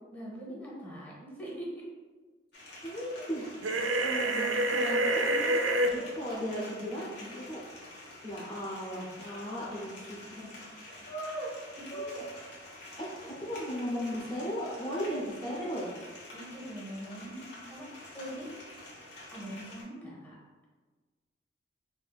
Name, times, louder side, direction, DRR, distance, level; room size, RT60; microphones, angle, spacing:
voice 1, 0.1-1.9 3.9-4.2 5.2-5.7 10.9-11.1 11.9-12.1 16.3-18.6 19.3-20.3, equal, 10° left, -5 dB, 1.0 m, -43 dB
sound 1, 2.5-19.8, left 1 dB, 65° left, 1.1 m, -48 dB
voice 2, 2.8-5.2 5.9-7.6 8.2-11.5 11.9-12.2 13.0-13.1 13.4-15.9, equal, 25° left, -7 dB, 0.6 m, -37 dB
sound 2, 3.6-5.9, right 1 dB, 85° right, 0.4 m, -27 dB
4.8 x 2.4 x 2.3 m, 1.4 s
head